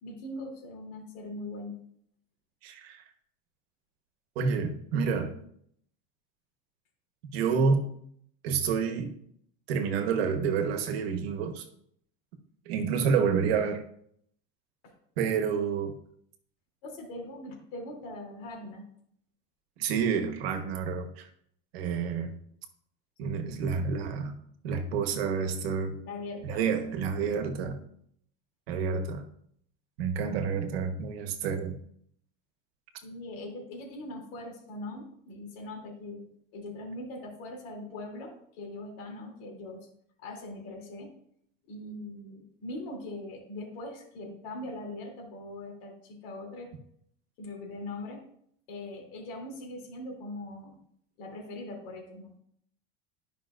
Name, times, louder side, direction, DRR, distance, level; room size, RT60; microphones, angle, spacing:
voice 1, 0.0-1.8 13.0-13.3 14.8-14.9 16.8-18.9 26.1-26.6 33.0-36.2 36.5-39.9 40.2-41.1 41.7-46.7 47.4-48.2 48.7-50.7 51.2-52.3, left 2 dB, 70° left, 0 dB, 3.0 m, -41 dB
voice 2, 2.6-3.0 4.3-5.3 7.3-7.9 8.4-9.1 9.7-11.6 12.7-13.8 15.2-15.9 19.8-21.3 21.7-22.3 23.2-24.4 24.6-26.0 26.4-27.8 28.7-29.2 30.0-31.8, right 6 dB, 85° right, 7 dB, 1.3 m, -29 dB
11.5 x 5.5 x 2.5 m, 0.68 s
supercardioid pair, 140°, 30 cm